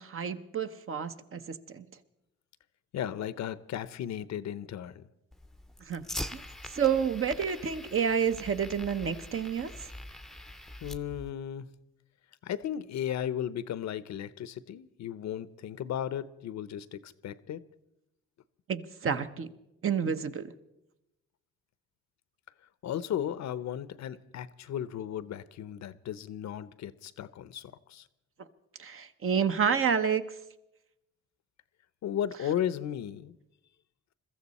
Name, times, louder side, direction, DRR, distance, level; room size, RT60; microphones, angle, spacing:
voice 1, 0.0-1.8 5.9-6.0 6.3-9.9 18.7-19.5 19.8-20.5 28.8-30.2, right 7 dB, 45° right, 1.0 m, -29 dB
voice 2, 2.9-5.1 10.8-11.7 12.4-17.6 22.8-28.1 32.0-33.3, left 10 dB, 65° left, 0.8 m, -35 dB
Fire, 5.3-11.3, left 1 dB, ahead, 0.7 m, -43 dB
22.0 x 14.0 x 4.2 m
cardioid pair, 90°, 30 cm